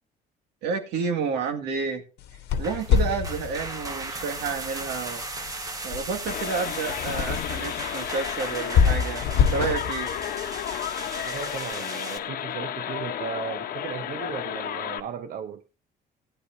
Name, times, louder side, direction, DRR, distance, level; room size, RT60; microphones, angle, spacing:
voice 1, 0.6-2.0 2.6-5.2 5.8-10.1, right 5 dB, 85° right, 2.0 m, -30 dB
sound 1, 2.2-11.6, left 7 dB, 80° left, 1.2 m, -28 dB
sound 2, 2.5-12.2, right 2 dB, 20° right, 1.5 m, -37 dB
sound 3, 6.3-15.0, left 10 dB, 60° left, 0.9 m, -33 dB
voice 2, 11.1-15.6, right 8 dB, 55° right, 0.8 m, -36 dB
16.0 x 9.8 x 2.7 m
cardioid pair, 110°, 17 cm